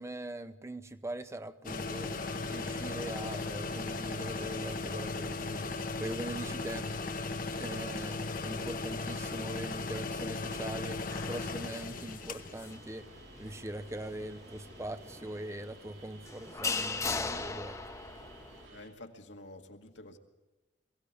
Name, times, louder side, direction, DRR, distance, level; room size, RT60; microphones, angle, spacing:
voice 1, 0.0-2.1 2.5-6.9 7.6-13.1 13.4-17.8, right 1 dB, 15° right, 0.6 m, -42 dB
sound 1, 1.6-12.8, left 3 dB, 50° left, 1.0 m, -37 dB
sound 2, 1.7-18.9, right 1 dB, 80° right, 4.5 m, -53 dB
sound 3, 11.1-18.7, left 4 dB, 15° left, 0.9 m, -40 dB
voice 2, 18.7-20.2, left 1 dB, 85° left, 2.0 m, -49 dB
22.0 x 16.5 x 8.3 m
head